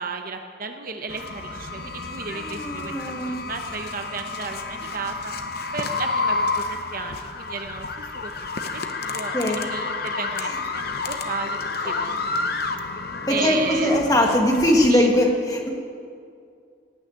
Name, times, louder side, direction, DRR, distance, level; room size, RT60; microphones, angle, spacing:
voice 1, 0.0-5.3 5.7-11.9 13.3-14.0 14.9-15.1, right 4 dB, 45° right, 5 dB, 0.9 m, -34 dB
sound 1, 1.1-14.9, left 3 dB, 50° left, 0.9 m, -30 dB
voice 2, 2.3-3.4 9.3-9.7 10.4-10.6 11.8-12.1 13.3-15.7, left 1 dB, 20° left, 0 dB, 1.7 m, -21 dB
18.0 x 6.5 x 9.2 m, 2.3 s
head